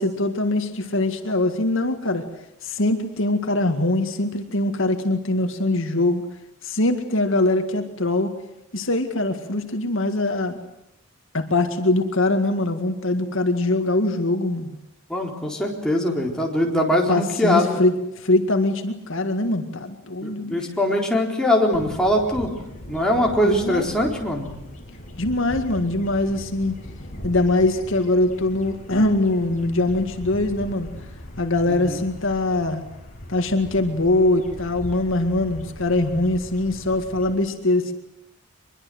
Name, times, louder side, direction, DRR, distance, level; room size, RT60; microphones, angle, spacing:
voice 1, 0.0-2.3 2.6-6.3 6.6-8.3 8.7-10.6 11.3-14.7 17.1-17.9 18.2-20.6 23.4-23.9 25.2-26.8 27.2-30.9 31.4-32.8 33.3-37.9, left 2 dB, 60° left, 6 dB, 2.0 m, -22 dB
voice 2, 15.1-17.8 20.2-22.5 22.9-24.5 31.7-32.1, left 1 dB, 5° left, -1 dB, 4.1 m, -22 dB
sound 1, 21.7-37.4, left 1 dB, 35° left, 5.6 m, -39 dB
24.5 x 22.5 x 7.9 m, 0.85 s
head